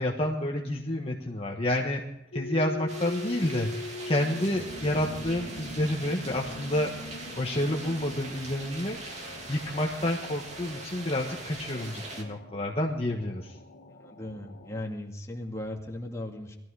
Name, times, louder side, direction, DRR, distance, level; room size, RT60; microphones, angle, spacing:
voice 1, 0.0-2.0 2.3-6.9 7.4-13.5, left 1 dB, 30° left, -1 dB, 1.4 m, -29 dB
sound 1, 2.3-14.8, left 2 dB, 70° left, 1.7 m, -43 dB
sound 2, 2.9-12.2, right 2 dB, 35° right, 2.9 m, -41 dB
voice 2, 14.0-16.6, left 1 dB, 15° left, 0 dB, 2.2 m, -37 dB
21.0 x 14.0 x 4.9 m, 0.88 s
head